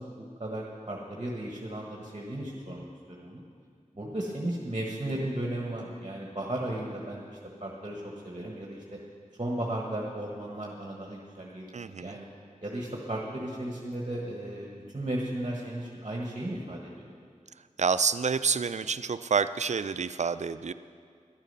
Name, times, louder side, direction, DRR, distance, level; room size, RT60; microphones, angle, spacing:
voice 1, 0.0-3.4 3.9-8.8 9.4-11.7 12.0-12.2 12.6-17.1, right 1 dB, 40° right, -2 dB, 1.4 m, -35 dB
voice 2, 11.7-12.2 17.8-20.7, right 5 dB, 60° right, 14 dB, 0.4 m, -28 dB
11.5 x 9.0 x 5.5 m, 2.2 s
wide cardioid pair, 40°, 14 cm